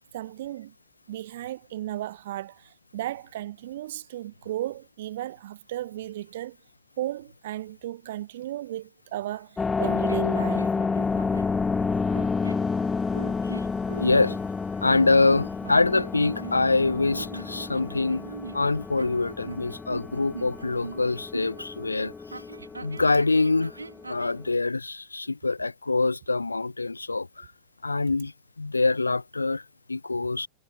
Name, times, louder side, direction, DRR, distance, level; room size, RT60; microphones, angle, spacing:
voice 1, 0.1-0.7 1.1-6.6 7.0-10.8, right 14 dB, 55° right, 1.1 m, -35 dB
sound 1, 9.6-24.5, left 4 dB, 15° left, 0.5 m, -30 dB
sound 2, 9.8-11.5 12.1-12.7 13.1-14.4 15.6-16.8 17.1-21.7 22.3-24.4, right 3 dB, 80° right, 1.9 m, -41 dB
voice 2, 13.9-14.4 14.8-18.2 18.5-22.4 22.8-23.8 24.1-27.5 27.8-30.5, left 3 dB, 80° left, 0.6 m, -25 dB
figure-of-eight pair, 90°, 0 cm